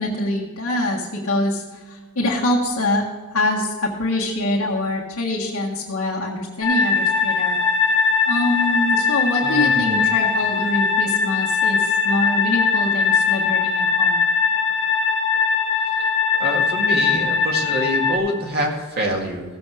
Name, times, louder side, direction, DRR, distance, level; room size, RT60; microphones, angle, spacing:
voice 1, 0.0-3.0 3.3-7.6 8.3-14.2, left 1 dB, 70° left, -4 dB, 1.7 m, -24 dB
sound 1, 6.6-18.2, left 5 dB, 25° left, 2.8 m, -20 dB
voice 2, 9.4-10.0 16.4-19.4, equal, 45° right, 0 dB, 2.0 m, -25 dB
16.0 x 7.0 x 4.9 m, 1.3 s
head